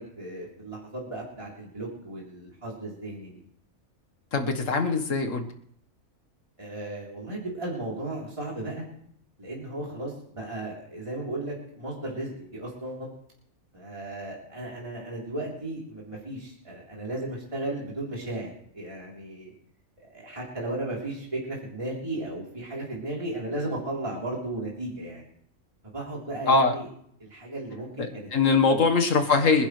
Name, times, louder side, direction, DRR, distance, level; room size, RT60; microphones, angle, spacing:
voice 1, 0.0-3.4 6.6-8.8 9.4-13.1 13.7-19.5 20.0-25.2 25.9-26.9 27.2-28.3 28.7-28.8, right 1 dB, 20° right, -4 dB, 3.7 m, -35 dB
voice 2, 4.3-5.5 26.5-26.7 28.0-29.7, left 4 dB, 60° left, 4 dB, 1.9 m, -22 dB
25.5 x 11.5 x 3.3 m, 0.68 s
omnidirectional pair, 1.6 m